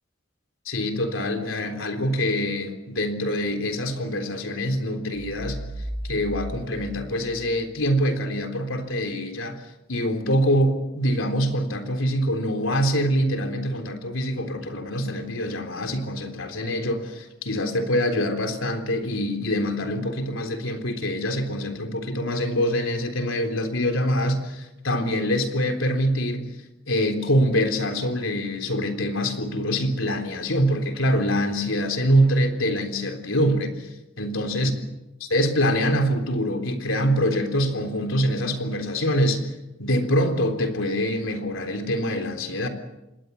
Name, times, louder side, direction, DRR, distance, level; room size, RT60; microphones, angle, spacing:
voice 1, 0.7-5.6 6.0-9.6 9.9-26.5 26.9-33.9 34.2-34.7 35.3-39.5 39.8-42.7, equal, 80° left, 5 dB, 3.7 m, -24 dB
sound 1, 5.1-7.8, right 1 dB, 65° left, 4.9 m, -36 dB
27.0 x 21.0 x 7.1 m, 0.97 s
head